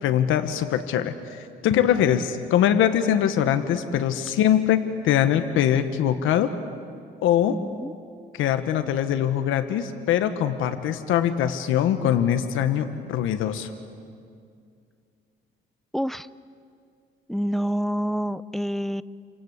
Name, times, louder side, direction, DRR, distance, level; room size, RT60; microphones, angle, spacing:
voice 1, 0.0-6.5 7.2-7.6 8.3-13.7, left 10 dB, 90° left, 9 dB, 1.3 m, -22 dB
voice 2, 7.5-8.0 15.9-16.3 17.3-19.0, equal, ahead, 16 dB, 0.6 m, -27 dB
29.0 x 25.5 x 8.1 m, 2.3 s
cardioid pair, 90°, 20 cm